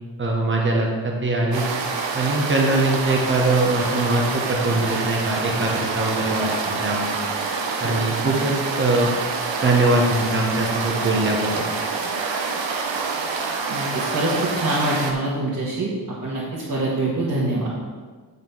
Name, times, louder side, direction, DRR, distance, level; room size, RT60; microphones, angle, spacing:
voice 1, 0.2-1.6 2.1-6.5 6.8-7.2 7.8-9.1 9.6-11.6, right 2 dB, 25° right, -1 dB, 1.3 m, -22 dB
sound 1, 1.5-15.1, right 4 dB, 90° right, 1.0 m, -27 dB
voice 2, 13.7-15.9 16.2-17.7, right 2 dB, 40° right, -8 dB, 1.7 m, -25 dB
8.0 x 5.7 x 5.6 m, 1.5 s
wide cardioid pair, 160°, 43 cm